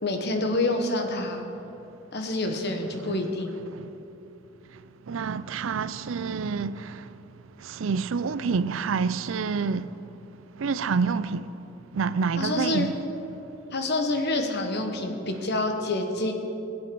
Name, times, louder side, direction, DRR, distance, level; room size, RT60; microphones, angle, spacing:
voice 1, 0.0-1.4 2.1-3.6 12.4-12.9 13.7-16.3, left 2 dB, 55° left, 1.3 m, -27 dB
voice 2, 5.1-7.0 7.6-9.9 10.6-11.5 11.9-12.9, right 5 dB, 75° right, 0.5 m, -28 dB
21.0 x 8.2 x 4.7 m
head